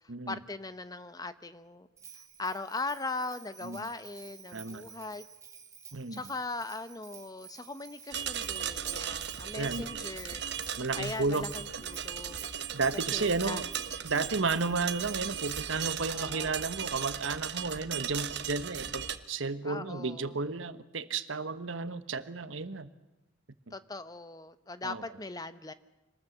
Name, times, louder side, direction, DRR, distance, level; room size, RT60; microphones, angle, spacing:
voice 1, 0.3-1.9 2.1-5.2 6.1-10.4 11.0-12.5 13.1-13.7 16.1-16.7 19.6-20.4 23.7-25.7, left 3 dB, 20° left, 13 dB, 0.8 m, -40 dB
Bell, 2.0-15.8, right 7 dB, 15° right, 2.1 m, -52 dB
voice 2, 4.5-4.8 5.9-6.2 9.6-9.9 10.8-11.5 12.7-13.6 14.0-22.9 24.8-25.0, right 4 dB, 80° right, 12 dB, 1.3 m, -32 dB
sound 1, 8.1-19.2, right 8 dB, 60° right, 1.2 m, -37 dB
26.0 x 20.0 x 7.9 m, 0.96 s
head